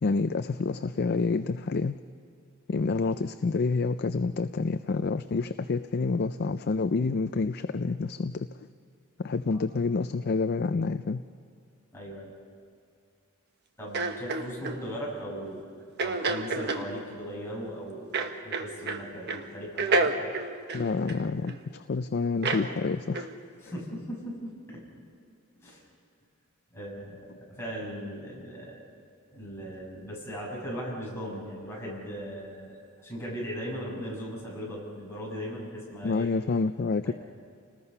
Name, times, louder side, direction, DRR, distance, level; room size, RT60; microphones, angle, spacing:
voice 1, 0.0-1.9 2.7-8.5 9.2-11.2 20.7-23.3 36.0-37.1, left 4 dB, 50° left, 11 dB, 0.4 m, -28 dB
voice 2, 11.9-12.3 13.8-15.7 16.0-18.1 18.4-20.1 23.6-24.8 25.6-25.8 26.7-27.2 27.5-28.8 29.3-32.7 33.0-36.3 37.0-37.1, equal, 10° left, -5 dB, 7.2 m, -38 dB
sound 1, 13.9-14.8 16.0-16.9 18.1-19.0 19.3-19.5 19.8-21.6 22.4-22.7 23.1-23.3, right 3 dB, 50° right, 1.3 m, -29 dB
29.5 x 19.5 x 5.6 m, 2.4 s
head